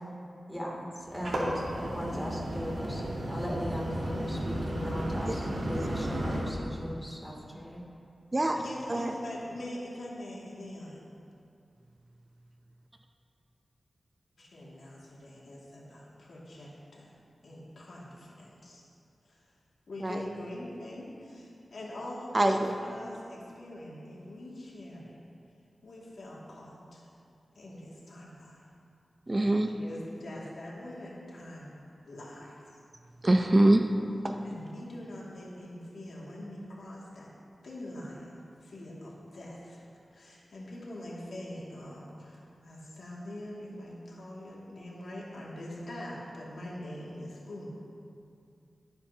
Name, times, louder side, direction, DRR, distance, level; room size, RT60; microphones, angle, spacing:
voice 1, 0.5-1.5 1.8-7.8, equal, 5° left, -2 dB, 2.6 m, -38 dB
sound 1, 1.0-6.4, right 1 dB, 80° right, 2.7 m, -33 dB
voice 2, 8.6-11.1 14.4-17.1 17.4-18.8 19.3-19.4 19.9-25.2 25.8-27.1 27.5-28.6 29.7-31.7 32.1-32.6 34.4-37.3 37.6-39.9 40.1-47.7, left 1 dB, 80° left, -5 dB, 2.3 m, -43 dB
voice 3, 22.3-22.7 29.3-29.7 33.2-33.8 34.2-34.4, right 1 dB, 30° right, 4 dB, 0.6 m, -24 dB
20.0 x 9.4 x 2.8 m, 2.5 s
wide cardioid pair, 80°, 0 cm